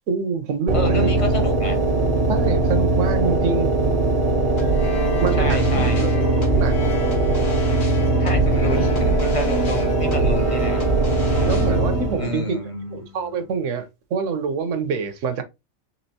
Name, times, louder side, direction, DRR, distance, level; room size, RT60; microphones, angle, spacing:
voice 1, 0.1-1.2 2.3-3.7 5.2-6.8 10.1-10.4 11.5-12.6 12.9-15.4, right 5 dB, 65° right, 1.1 m, -26 dB
voice 2, 0.7-1.8 5.4-6.1 8.2-10.8 12.2-13.0, left 1 dB, 30° left, 0.6 m, -29 dB
sound 1, 0.7-12.4, right 2 dB, 85° right, 1.6 m, -20 dB
sound 2, 4.6-13.7, right 1 dB, 65° left, 1.8 m, -29 dB
4.3 x 3.6 x 2.7 m
omnidirectional pair, 1.5 m